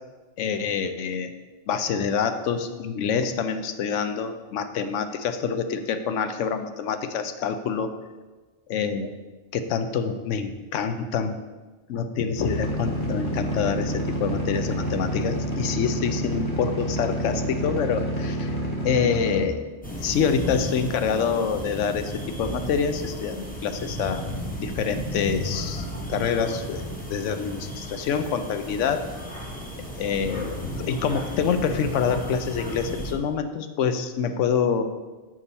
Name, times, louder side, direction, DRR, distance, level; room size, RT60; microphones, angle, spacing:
voice 1, 0.4-1.3 1.7-7.9 8.7-9.1 9.5-11.4 11.9-18.5 18.8-19.6 20.0-24.3 24.6-26.8 27.1-29.0 30.0-34.8, left 6 dB, 90° left, 9 dB, 1.0 m, -26 dB
sound 1, 12.4-19.4, equal, 25° left, 1.3 m, -28 dB
sound 2, 19.8-33.1, equal, 10° left, 1.0 m, -34 dB
6.9 x 6.1 x 4.1 m, 1.3 s
omnidirectional pair, 1.2 m